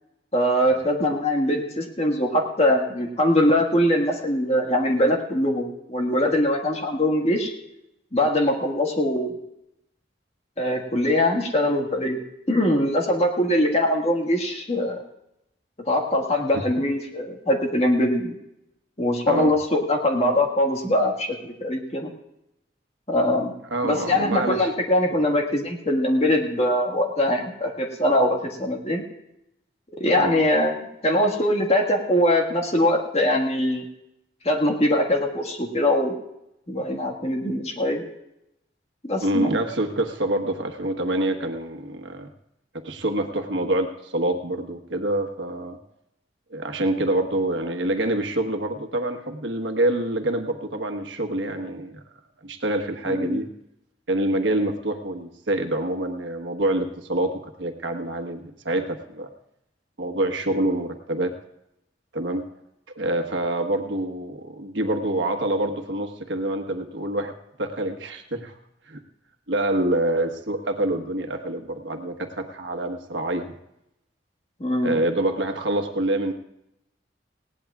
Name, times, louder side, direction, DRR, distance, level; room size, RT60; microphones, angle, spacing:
voice 1, 0.3-7.5 8.1-9.3 10.6-12.2 12.5-15.0 15.8-18.3 19.0-22.1 23.1-23.5 23.8-29.0 29.9-33.8 34.4-36.2 36.7-38.0 39.1-39.5 53.0-53.4 74.6-74.9, left 1 dB, 35° left, 1 dB, 1.7 m, -22 dB
voice 2, 23.7-24.7 25.1-25.2 30.2-30.4 39.2-42.3 42.7-45.8 46.5-52.0 52.4-53.5 54.1-59.3 60.0-61.3 62.1-62.5 62.9-67.3 67.6-68.5 68.9-69.0 69.5-73.5 74.8-76.3, right 1 dB, 90° right, 5 dB, 1.3 m, -26 dB
19.5 x 17.0 x 2.4 m, 0.83 s
head